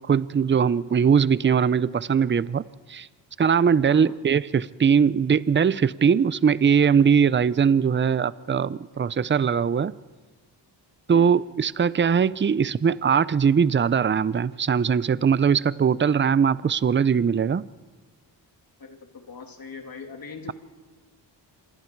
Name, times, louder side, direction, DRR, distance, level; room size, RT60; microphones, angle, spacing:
voice 1, 0.1-2.6 2.9-3.1 3.4-9.9 11.1-17.6, right 7 dB, 25° right, 18 dB, 0.6 m, -21 dB
voice 2, 3.8-4.2 11.1-11.4 18.8-20.5, left 5 dB, 50° left, 3 dB, 2.9 m, -41 dB
27.0 x 21.0 x 4.7 m, 1.3 s
cardioid pair, 75°, 44 cm